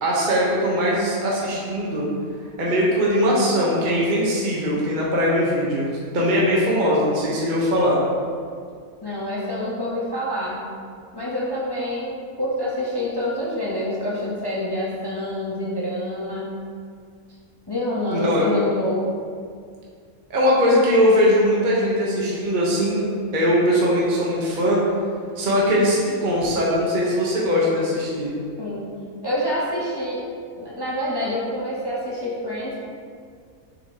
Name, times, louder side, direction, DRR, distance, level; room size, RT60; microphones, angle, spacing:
voice 1, 0.0-2.1 2.6-8.0 18.1-18.4 20.3-24.8 25.4-28.3, equal, 35° right, -5 dB, 1.2 m, -20 dB
voice 2, 9.0-10.6 11.1-16.5 17.7-19.1 28.6-28.9 29.2-30.2 30.5-32.8, left 1 dB, 20° left, -6 dB, 0.9 m, -27 dB
6.6 x 5.8 x 3.0 m, 2.1 s
omnidirectional pair, 1.5 m